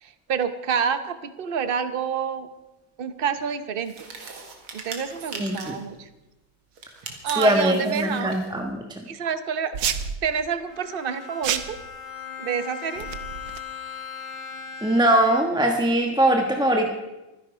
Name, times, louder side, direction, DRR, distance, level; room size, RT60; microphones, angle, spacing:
voice 1, 0.0-2.5 3.0-4.1 4.7-6.1 7.2-8.4 9.1-9.8 10.2-11.8 12.4-13.1, right 7 dB, 55° right, 11 dB, 0.6 m, -28 dB
sound 1, 3.8-5.9 6.7-8.5, right 4 dB, 90° right, 2.8 m, -40 dB
voice 2, 5.4-5.8 7.4-8.8 14.8-16.9, right 1 dB, 5° right, 3 dB, 0.9 m, -21 dB
sound 2, 9.7-10.2 11.4-11.8 13.0-13.6, right 9 dB, 70° right, 1.5 m, -28 dB
Bowed string instrument, 10.7-15.7, left 6 dB, 85° left, 3.0 m, -38 dB
24.0 x 10.5 x 5.0 m, 1.0 s
omnidirectional pair, 2.2 m